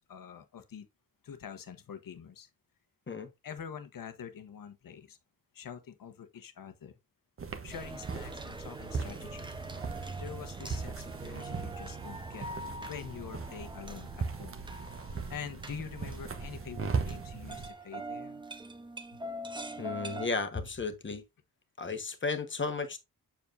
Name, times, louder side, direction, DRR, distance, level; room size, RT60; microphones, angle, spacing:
voice 1, 0.1-0.9 1.2-2.5 3.4-5.2 5.5-7.0 7.6-9.5 10.2-14.6 15.3-18.4 19.1-19.2, left 7 dB, 70° left, 1.2 m, -45 dB
sound 1, 7.4-17.7, right 5 dB, 40° right, 1.0 m, -38 dB
sound 2, 7.7-20.3, right 1 dB, 15° right, 0.8 m, -44 dB
voice 2, 19.8-21.2 21.8-23.0, left 4 dB, 35° left, 1.3 m, -34 dB
7.2 x 7.1 x 2.6 m
wide cardioid pair, 135°, 34 cm